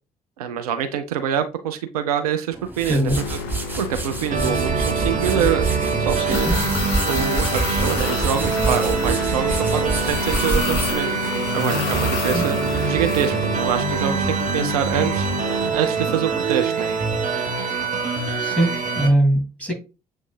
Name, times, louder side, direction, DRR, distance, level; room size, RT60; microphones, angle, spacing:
voice 1, 0.4-3.4 3.8-5.7 6.0-6.5 7.1-11.1 11.5-12.6 12.9-15.3 15.7-16.9, right 8 dB, 75° right, 0.5 m, -25 dB
sound 1, 2.5-11.9, right 2 dB, 10° right, 1.2 m, -28 dB
voice 2, 2.9-3.2 6.2-6.6 12.3-12.4 18.4-19.7, right 1 dB, 5° left, 2.3 m, -21 dB
sound 2, 3.1-15.7, left 4 dB, 60° left, 0.6 m, -29 dB
sound 3, 4.3-19.1, right 5 dB, 40° right, 0.9 m, -24 dB
7.3 x 2.6 x 2.3 m
figure-of-eight pair, 50°, 19 cm